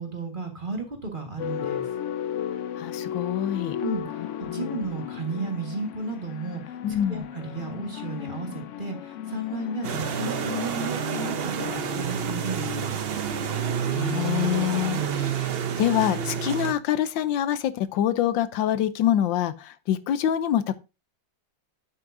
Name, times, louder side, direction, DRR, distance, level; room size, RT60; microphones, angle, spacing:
voice 1, 0.0-1.9 3.8-4.3 4.5-6.8 7.1-13.0, right 3 dB, 30° right, 1.7 m, -33 dB
sound 1, 1.4-14.7, left 9 dB, 70° left, 0.7 m, -36 dB
voice 2, 2.8-3.8 4.5-4.7 6.8-7.2 13.9-15.5 15.8-20.8, left 11 dB, 85° left, 1.4 m, -25 dB
sound 2, 9.8-16.7, right 8 dB, 75° right, 0.5 m, -29 dB
9.2 x 8.3 x 2.6 m
omnidirectional pair, 2.0 m